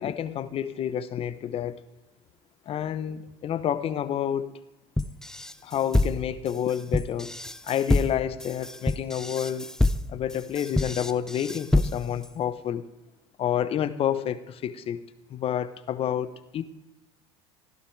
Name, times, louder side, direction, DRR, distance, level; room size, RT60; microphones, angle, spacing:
voice 1, 0.0-1.8 2.7-4.5 5.6-7.3 7.6-9.7 10.1-12.8 13.4-15.0 15.3-16.6, left 9 dB, 45° left, 13 dB, 0.9 m, -29 dB
sound 1, 5.0-12.3, left 2 dB, 5° left, 0.5 m, -27 dB
14.5 x 12.0 x 3.3 m, 0.98 s
hypercardioid pair, 85°, 14 cm